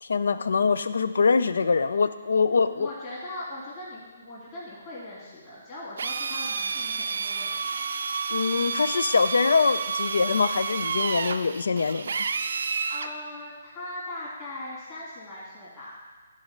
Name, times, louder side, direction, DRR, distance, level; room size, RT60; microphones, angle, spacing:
voice 1, 0.0-2.9 8.3-12.1, left 5 dB, 75° left, 12 dB, 0.5 m, -23 dB
voice 2, 2.7-7.8 12.9-15.9, left 1 dB, 25° left, -8 dB, 2.7 m, -40 dB
Drill, 6.0-13.1, right 5 dB, 60° right, 0.4 m, -30 dB
11.5 x 3.9 x 5.3 m, 1.5 s
hypercardioid pair, 170°, 0 cm